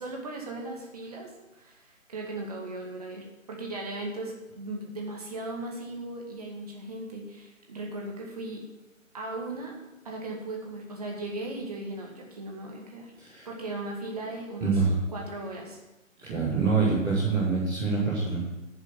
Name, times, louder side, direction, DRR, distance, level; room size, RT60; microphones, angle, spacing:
voice 1, 0.0-8.6 9.1-9.7 10.0-13.1 13.4-14.8 15.1-15.8, right 2 dB, 30° right, 0 dB, 2.1 m, -37 dB
voice 2, 14.6-14.9 16.2-18.4, right 4 dB, 5° right, -11 dB, 1.1 m, -25 dB
8.9 x 7.3 x 8.3 m, 1.0 s
figure-of-eight pair, 150°, 40 cm